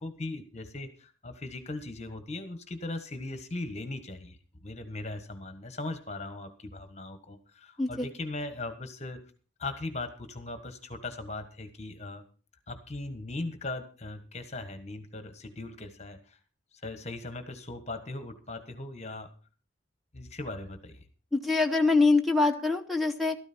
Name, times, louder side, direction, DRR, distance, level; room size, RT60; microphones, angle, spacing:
voice 1, 0.0-4.4 4.6-9.2 9.6-12.2 12.7-16.4 16.7-19.3 20.1-21.0, left 2 dB, 35° left, 9 dB, 1.3 m, -39 dB
voice 2, 21.3-23.4, left 3 dB, ahead, 5 dB, 0.9 m, -24 dB
13.5 x 13.0 x 4.4 m, 0.37 s
head